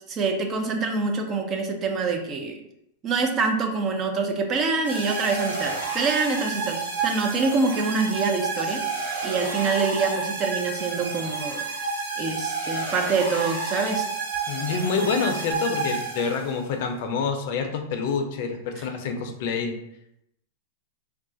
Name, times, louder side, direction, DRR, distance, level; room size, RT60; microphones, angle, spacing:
voice 1, 0.1-2.6 3.0-8.8 9.2-11.6 12.2-14.1, right 4 dB, 35° right, 4 dB, 0.5 m, -25 dB
sound 1, 4.8-16.7, right 4 dB, 90° right, 1.2 m, -30 dB
voice 2, 14.5-19.7, left 5 dB, 60° left, 5 dB, 0.5 m, -27 dB
2.3 x 2.3 x 3.8 m, 0.78 s
hypercardioid pair, 120°, 0 cm